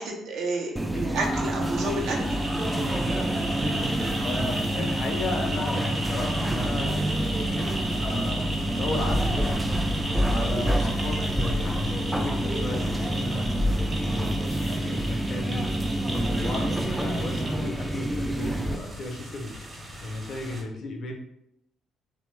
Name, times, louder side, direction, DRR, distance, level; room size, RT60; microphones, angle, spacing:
voice 1, 0.0-2.4, right 2 dB, 60° right, 0 dB, 0.6 m, -30 dB
sound 1, 0.8-18.8, right 1 dB, 10° right, 0.3 m, -27 dB
sound 2, 1.6-20.6, right 1 dB, 25° right, 0.8 m, -36 dB
voice 2, 4.2-9.7 10.2-13.6 14.1-15.7 16.1-19.6 20.0-21.1, left 2 dB, 50° left, 2 dB, 0.5 m, -35 dB
2.9 x 2.1 x 3.0 m, 0.78 s
figure-of-eight pair, 45°, 0 cm